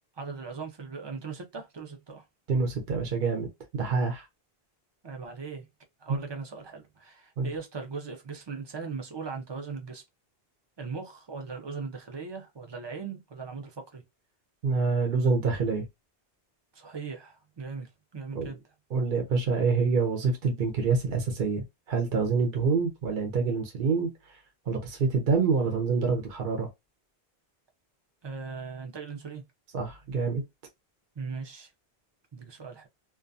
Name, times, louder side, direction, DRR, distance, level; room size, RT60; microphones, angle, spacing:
voice 1, 0.1-2.2 5.0-5.7 6.0-10.0 10.8-14.0 16.7-18.6 28.2-29.5 31.2-31.7 32.3-32.9, right 5 dB, 40° right, 0.4 m, -39 dB
voice 2, 2.5-4.2 6.1-6.2 7.4-7.5 14.6-15.8 18.3-18.5 18.9-24.1 24.7-26.7 29.7-30.4, right 4 dB, 60° right, 0.8 m, -26 dB
2.4 x 2.3 x 2.5 m
omnidirectional pair, 1.0 m